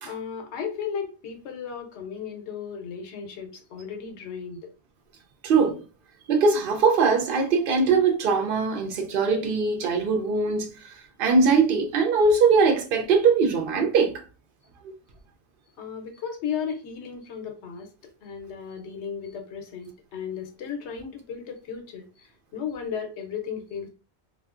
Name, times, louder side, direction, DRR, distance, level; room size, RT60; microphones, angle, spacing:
voice 1, 0.0-4.7 15.8-17.9 18.2-23.9, left 7 dB, 85° left, 0.9 m, -35 dB
voice 2, 5.4-5.8 6.3-14.2 14.8-14.9, right 4 dB, 60° right, 0.7 m, -21 dB
2.6 x 2.4 x 2.4 m
omnidirectional pair, 1.1 m